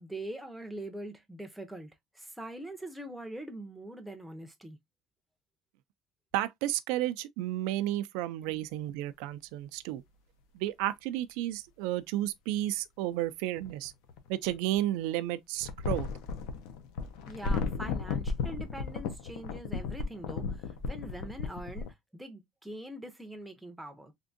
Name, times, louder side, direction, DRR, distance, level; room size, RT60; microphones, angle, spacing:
voice 1, 0.0-4.8 8.5-8.6 17.3-21.9 22.1-24.1, right 1 dB, ahead, 0.5 m, -43 dB
voice 2, 6.3-10.0 10.5-13.9 14.3-16.1, right 14 dB, 85° right, 0.3 m, -32 dB
sound 1, 11.3-11.4 13.6-14.8 15.6-21.9, left 4 dB, 80° left, 0.7 m, -34 dB
3.5 x 2.5 x 2.5 m
cardioid pair, 165°, 0 cm